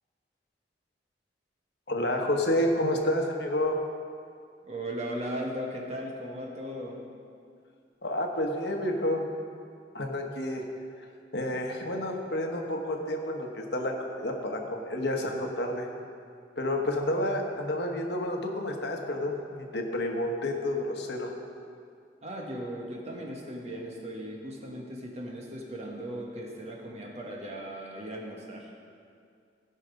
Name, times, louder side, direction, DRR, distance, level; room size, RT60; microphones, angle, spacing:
voice 1, 1.9-3.8 8.0-9.3 9.9-10.6 11.3-15.9 16.6-21.3, left 1 dB, 70° left, 2 dB, 1.2 m, -30 dB
voice 2, 4.6-7.0 22.2-28.7, equal, 40° right, -1 dB, 1.5 m, -37 dB
16.0 x 5.6 x 5.2 m, 2.3 s
head